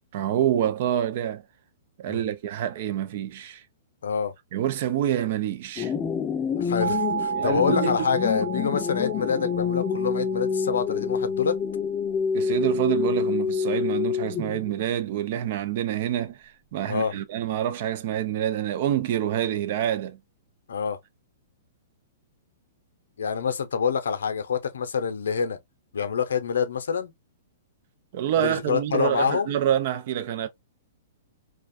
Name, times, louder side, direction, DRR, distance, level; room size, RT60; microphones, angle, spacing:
voice 1, 0.1-1.4 2.0-3.6 4.5-5.9 7.3-7.9 12.3-20.2 28.1-30.5, right 11 dB, 55° right, 0.4 m, -27 dB
voice 2, 4.0-4.3 6.6-11.6 16.9-17.1 20.7-21.0 23.2-25.6 25.9-27.1 28.4-29.5, left 6 dB, 85° left, 0.5 m, -26 dB
sound 1, 5.8-14.7, left 6 dB, 20° left, 0.5 m, -27 dB
sound 2, 6.8-11.5, right 7 dB, 75° right, 0.9 m, -33 dB
2.4 x 2.1 x 2.5 m
hypercardioid pair, 130°, 0 cm